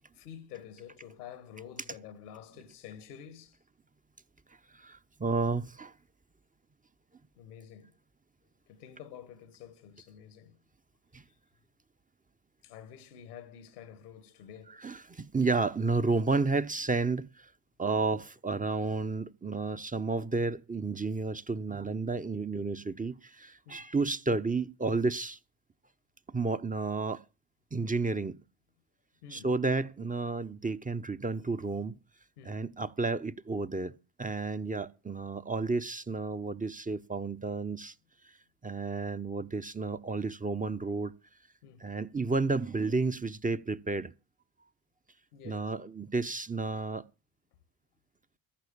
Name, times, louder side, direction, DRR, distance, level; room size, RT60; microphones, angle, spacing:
voice 1, 0.1-3.6 7.4-7.9 8.7-10.5 12.6-14.8 23.7-23.9 29.2-29.5 32.4-32.6 41.6-41.9 45.3-45.7, left 9 dB, 90° left, 1.3 m, -49 dB
voice 2, 4.7-5.9 11.1-11.2 14.7-17.5 17.8-25.4 26.3-27.2 27.7-28.4 29.3-32.0 32.4-33.9 34.2-37.9 38.6-41.1 41.8-44.1 45.4-47.0, right 3 dB, 20° right, 0.8 m, -31 dB
14.0 x 6.4 x 8.5 m
hypercardioid pair, 45°, 44 cm